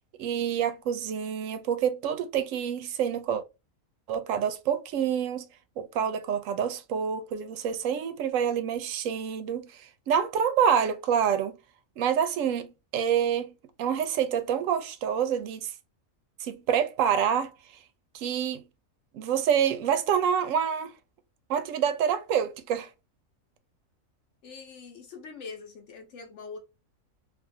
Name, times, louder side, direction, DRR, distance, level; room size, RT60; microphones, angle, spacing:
voice 1, 0.2-3.4 4.1-5.5 5.8-11.6 12.0-13.5 13.8-15.7 16.4-17.5 18.1-18.6 19.1-20.9 21.5-22.9, right 8 dB, 75° right, 0.9 m, -27 dB
voice 2, 24.4-26.6, left 4 dB, 65° left, 0.9 m, -43 dB
2.6 x 2.5 x 2.6 m
omnidirectional pair, 1.4 m